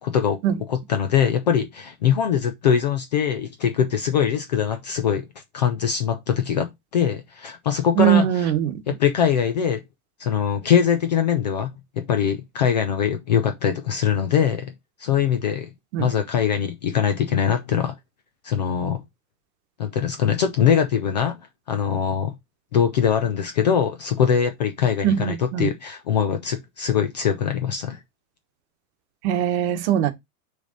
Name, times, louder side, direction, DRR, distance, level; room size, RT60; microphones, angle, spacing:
voice 1, 0.0-0.4 0.7-5.3 5.5-6.7 6.9-8.5 8.9-9.8 10.2-14.7 15.0-15.7 16.0-17.9 18.4-19.0 19.8-21.4 21.7-22.4 22.7-28.0, left 8 dB, 30° left, 0.4 m, -22 dB
voice 2, 8.0-8.8 15.9-16.1 25.0-25.7 29.2-30.1, right 10 dB, 45° right, 1.1 m, -21 dB
6.3 x 3.3 x 5.0 m
supercardioid pair, 170°, 46 cm